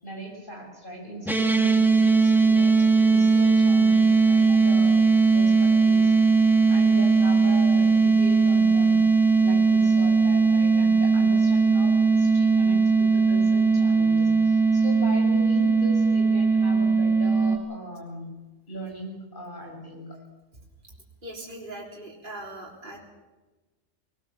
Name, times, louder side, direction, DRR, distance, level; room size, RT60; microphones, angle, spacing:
voice 1, 0.0-5.0 5.3-6.1 6.7-9.0 9.4-18.3 18.7-20.1, right 1 dB, 40° left, 1 dB, 6.9 m, -39 dB
sound 1, 1.3-17.6, right 4 dB, ahead, 1.8 m, -19 dB
voice 2, 21.2-23.0, right 1 dB, 40° right, -3 dB, 3.9 m, -40 dB
20.5 x 19.5 x 7.2 m, 1.2 s
omnidirectional pair, 1.3 m